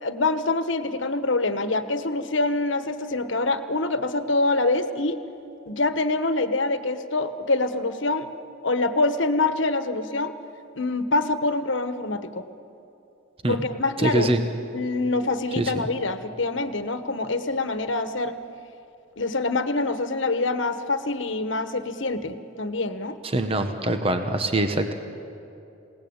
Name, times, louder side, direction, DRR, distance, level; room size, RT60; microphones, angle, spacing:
voice 1, 0.0-5.2 5.7-8.3 8.6-10.3 10.8-12.5 13.5-14.3 14.7-18.4 19.2-23.2, left 2 dB, 70° left, 10 dB, 1.3 m, -25 dB
voice 2, 14.0-14.5 15.6-15.9 23.2-24.9, right 1 dB, 30° right, 7 dB, 1.3 m, -24 dB
27.5 x 18.0 x 8.9 m, 2.7 s
head